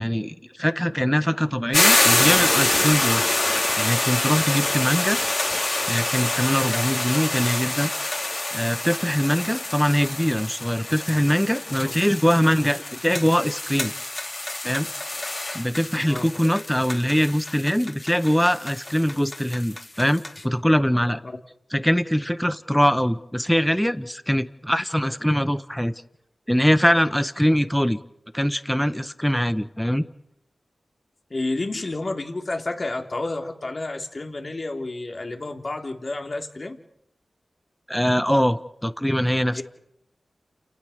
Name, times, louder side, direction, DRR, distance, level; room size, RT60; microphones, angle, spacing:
voice 1, 0.0-3.3 3.8-5.2 5.9-7.9 8.5-13.9 14.6-14.9 15.5-21.2 21.7-25.9 26.5-28.0 28.3-30.1 37.9-39.6, equal, 5° left, 12 dB, 1.5 m, -22 dB
sound 1, 1.7-20.4, left 2 dB, 35° left, 3.3 m, -26 dB
voice 2, 31.3-36.8 39.5-39.6, left 2 dB, 50° left, 3 dB, 3.4 m, -30 dB
29.0 x 18.5 x 6.7 m, 0.83 s
cardioid pair, 40°, 0 cm